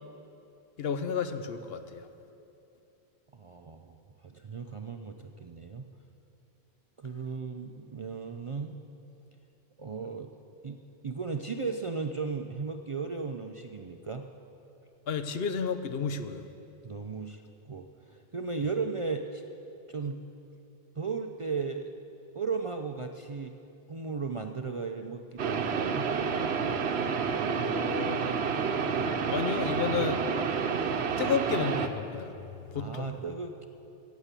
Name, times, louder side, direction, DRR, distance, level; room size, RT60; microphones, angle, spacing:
voice 1, 0.8-2.1 15.1-16.4 27.6-28.3 29.3-33.1, left 6 dB, 70° left, 9 dB, 0.9 m, -32 dB
voice 2, 3.4-4.0 4.2-5.9 7.0-8.8 9.8-10.3 10.6-10.8 11.0-14.3 16.8-19.4 19.9-20.2 21.0-21.9 22.3-23.5 23.9-26.1 32.7-33.7, right 4 dB, 45° right, 5 dB, 0.4 m, -35 dB
sound 1, 25.4-31.9, right 6 dB, 75° right, 1.0 m, -29 dB
15.0 x 7.1 x 8.2 m, 2.8 s
omnidirectional pair, 1.1 m